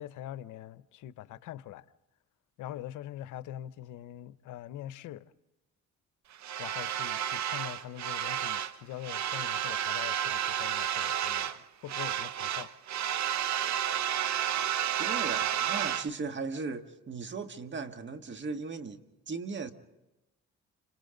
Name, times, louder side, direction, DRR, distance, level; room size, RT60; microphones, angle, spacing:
voice 1, 0.0-1.8 2.6-5.2 6.6-12.7, left 12 dB, 85° left, 0.8 m, -43 dB
sound 1, 6.4-8.8 9.0-11.6 11.9-16.1, right 10 dB, 65° right, 0.9 m, -31 dB
voice 2, 15.0-19.7, right 4 dB, 40° right, 1.8 m, -37 dB
29.5 x 26.5 x 3.9 m
cardioid pair, 90°, 30 cm